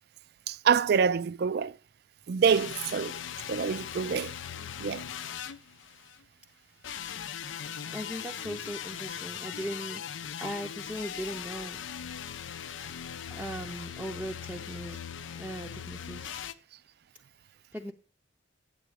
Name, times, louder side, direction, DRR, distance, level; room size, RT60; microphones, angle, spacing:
voice 1, 0.5-1.7 2.3-3.2 3.5-4.3 4.8-5.0, right 6 dB, 55° right, 0.4 m, -26 dB
sound 1, 2.5-6.2 6.8-16.5, left 8 dB, 90° left, 0.5 m, -40 dB
voice 2, 7.9-10.0 10.4-11.8 13.3-15.0 15.3-16.5 17.7-17.9, equal, 5° right, 0.6 m, -38 dB
9.0 x 7.7 x 4.8 m
head